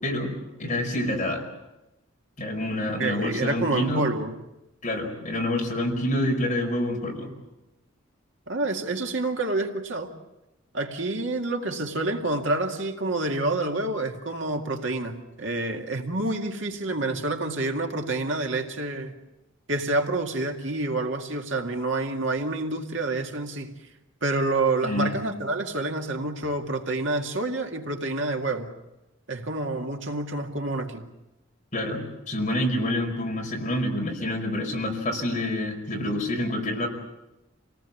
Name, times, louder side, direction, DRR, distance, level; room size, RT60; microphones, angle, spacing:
voice 1, 0.6-1.4 2.4-4.1 4.8-7.3 24.8-25.2 31.7-36.9, left 1 dB, 35° left, 1 dB, 5.3 m, -27 dB
voice 2, 3.0-4.3 8.5-10.1 10.7-19.1 19.7-23.7 24.2-28.7 29.3-31.1, right 2 dB, 65° right, 3 dB, 2.2 m, -28 dB
27.5 x 19.0 x 8.5 m, 0.95 s
head